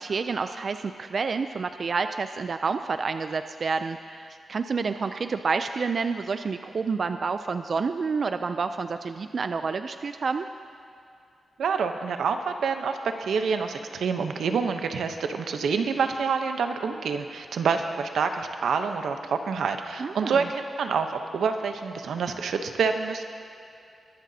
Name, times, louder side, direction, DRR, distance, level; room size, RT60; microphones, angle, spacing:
voice 1, 0.0-10.5 20.0-20.5, right 4 dB, 50° right, 9 dB, 0.3 m, -29 dB
voice 2, 11.6-23.2, right 5 dB, 90° right, 6 dB, 0.8 m, -27 dB
22.5 x 11.5 x 2.8 m, 2.7 s
wide cardioid pair, 120°, 0 cm